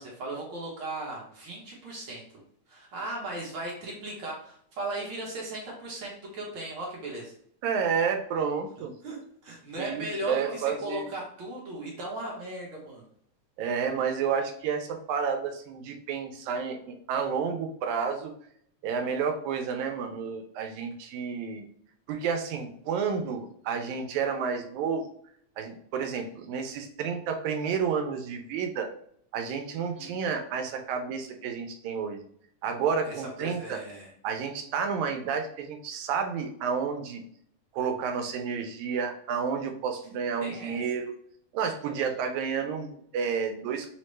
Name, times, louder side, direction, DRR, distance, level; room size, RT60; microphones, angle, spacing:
voice 1, 0.0-2.2 2.7-7.3 9.0-13.0 29.9-30.1 33.0-34.1 40.4-40.8, right 1 dB, 60° right, -2 dB, 1.3 m, -37 dB
voice 2, 7.6-8.9 9.8-11.0 13.6-18.3 18.8-21.7 22.1-25.0 25.6-28.9 29.3-32.2 32.6-33.8 34.2-37.2 37.7-41.1 41.5-43.9, right 6 dB, 90° right, 5 dB, 2.0 m, -30 dB
6.3 x 2.1 x 3.1 m, 0.65 s
omnidirectional pair, 3.3 m